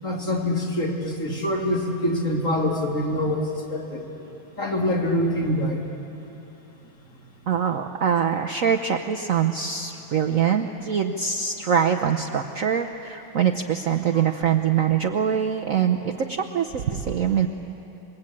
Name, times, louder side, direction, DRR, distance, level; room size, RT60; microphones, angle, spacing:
voice 1, 0.0-4.1 4.6-5.8, left 1 dB, 40° left, -1 dB, 3.5 m, -25 dB
voice 2, 7.5-17.5, right 8 dB, 55° right, 4 dB, 1.0 m, -23 dB
28.0 x 22.0 x 8.6 m, 2.9 s
omnidirectional pair, 2.2 m